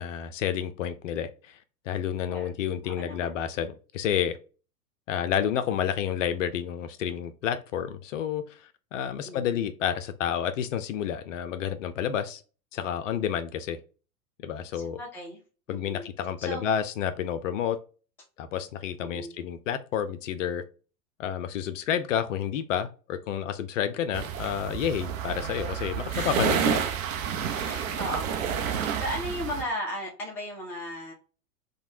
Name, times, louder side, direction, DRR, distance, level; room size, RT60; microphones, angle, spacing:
voice 1, 0.0-1.6 1.9-4.4 5.1-12.4 12.7-13.8 14.4-15.0 15.7-17.8 18.4-20.6 21.2-26.9, left 9 dB, 55° left, 0.5 m, -30 dB
voice 2, 2.8-3.4 9.3-9.7 14.7-15.4 15.7-16.1 16.4-16.7 19.0-19.3 26.1-26.5 27.4-31.1, left 1 dB, 5° left, 0.4 m, -37 dB
sound 1, 24.1-29.6, right 8 dB, 60° right, 0.7 m, -29 dB
3.1 x 2.3 x 2.7 m
figure-of-eight pair, 95°, 45 cm